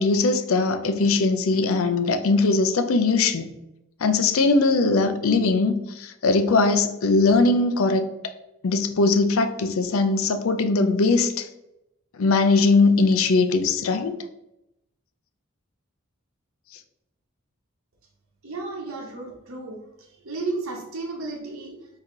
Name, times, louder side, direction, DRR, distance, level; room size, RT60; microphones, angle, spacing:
voice 1, 0.0-3.5 4.0-8.0 8.6-11.5 12.2-14.2, left 3 dB, 85° left, 8 dB, 0.5 m, -20 dB
voice 2, 18.4-21.9, right 3 dB, 90° right, -1 dB, 0.9 m, -33 dB
4.5 x 2.9 x 3.7 m, 0.87 s
head